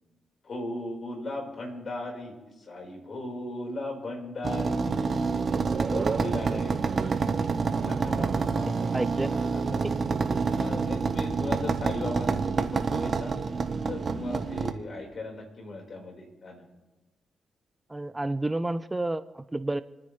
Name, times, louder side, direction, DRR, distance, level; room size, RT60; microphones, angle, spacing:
voice 1, 0.4-4.8 5.9-7.4 7.7-8.8 9.4-9.9 10.5-13.3 13.9-16.6, left 2 dB, 55° left, 0 dB, 4.7 m, -37 dB
sound 1, 4.4-14.7, right 4 dB, 55° right, 1.2 m, -27 dB
voice 2, 8.6-9.5 17.9-19.8, right 2 dB, 20° right, 13 dB, 0.7 m, -31 dB
28.5 x 9.7 x 3.3 m, 1.1 s
supercardioid pair, 50°, 0 cm